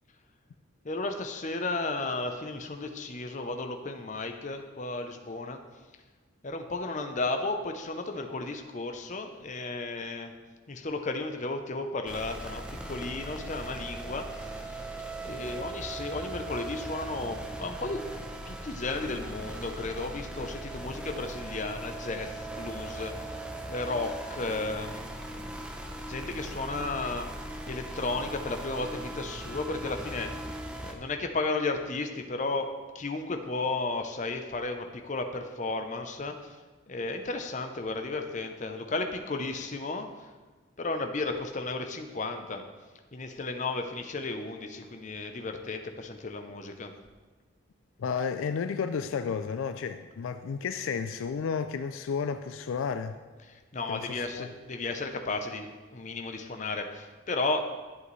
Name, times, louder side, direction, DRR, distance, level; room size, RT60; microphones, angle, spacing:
voice 1, 0.8-5.6 6.4-10.3 10.7-14.7 15.2-18.0 18.5-23.4 23.7-25.5 26.0-27.3 27.7-30.5 30.8-36.6 36.9-40.3 40.8-42.7 43.1-46.9 53.5-57.6, left 3 dB, 35° left, 6 dB, 0.6 m, -34 dB
sound 1, 12.1-30.9, right 1 dB, 5° right, 0.6 m, -39 dB
voice 2, 48.0-53.2 53.9-54.5, left 6 dB, 75° left, 10 dB, 0.4 m, -32 dB
11.0 x 7.7 x 3.2 m, 1.3 s
head